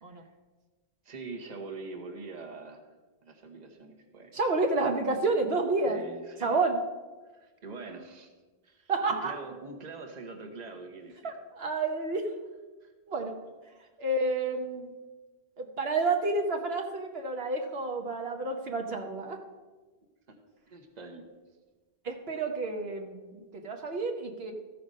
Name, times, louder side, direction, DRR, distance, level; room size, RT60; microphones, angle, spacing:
voice 1, 1.0-2.9 3.2-4.3 5.8-6.6 7.2-8.3 8.6-8.9 9.2-11.3 12.8-12.9 20.3-20.4 20.7-21.2, right 3 dB, 45° right, 4 dB, 1.2 m, -44 dB
voice 2, 4.3-6.0 6.4-6.8 8.9-9.4 11.2-12.4 13.1-13.4 13.6-14.9 15.6-19.4 22.0-24.5, right 3 dB, 75° right, 2 dB, 1.2 m, -30 dB
13.5 x 5.8 x 5.3 m, 1.3 s
omnidirectional pair, 1.1 m